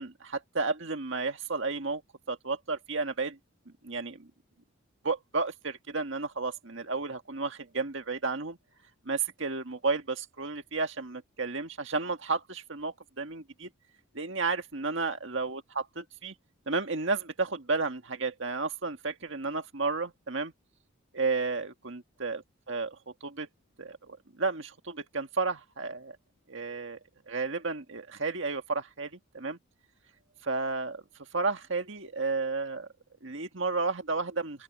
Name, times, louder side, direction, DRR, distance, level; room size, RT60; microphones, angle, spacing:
voice 1, 0.0-2.0 2.3-3.4 3.7-4.3 5.0-8.6 9.1-13.7 14.1-16.4 16.7-20.5 21.1-23.5 23.8-26.2 26.5-27.0 27.3-29.6 30.4-31.0 31.3-32.9 33.2-34.6, right 3 dB, 65° right, 1.7 m, -32 dB
open air
head